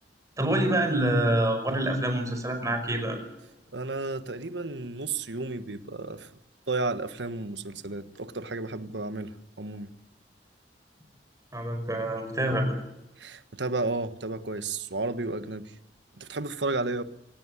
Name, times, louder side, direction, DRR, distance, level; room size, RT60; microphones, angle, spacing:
voice 1, 0.4-3.2 11.5-12.7, right 1 dB, 20° right, 5.4 m, -26 dB
voice 2, 3.7-6.3 6.7-10.0 13.2-15.7 16.2-17.0, right 3 dB, 75° right, 1.4 m, -32 dB
27.0 x 17.5 x 9.8 m
head